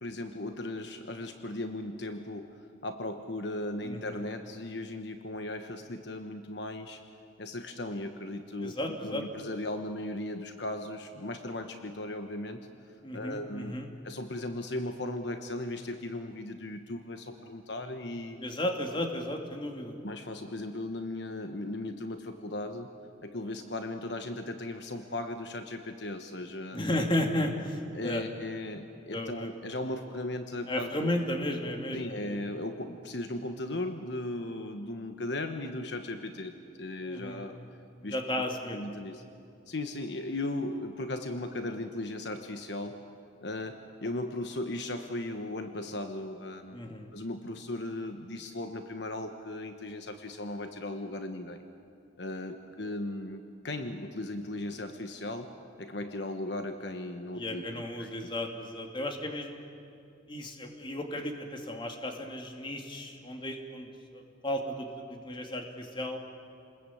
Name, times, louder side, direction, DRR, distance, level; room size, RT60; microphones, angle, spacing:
voice 1, 0.0-2.5 2.8-7.0 7.4-12.6 13.1-13.7 14.0-18.4 20.0-22.9 23.2-26.8 27.9-31.1 31.9-36.5 36.8-37.6 38.0-38.2 38.7-39.2 39.7-43.0 43.4-46.8 47.1-51.6 52.2-55.5 55.8-58.1, left 1 dB, 65° left, 6 dB, 1.2 m, -37 dB
voice 2, 3.8-4.2 8.6-9.2 13.0-13.9 18.4-20.0 26.7-28.2 29.1-29.5 30.7-32.4 37.0-37.4 38.1-38.8 46.7-47.1 57.4-59.6 60.3-66.2, left 1 dB, 25° left, 3 dB, 2.5 m, -34 dB
29.0 x 20.5 x 8.6 m, 2.5 s
head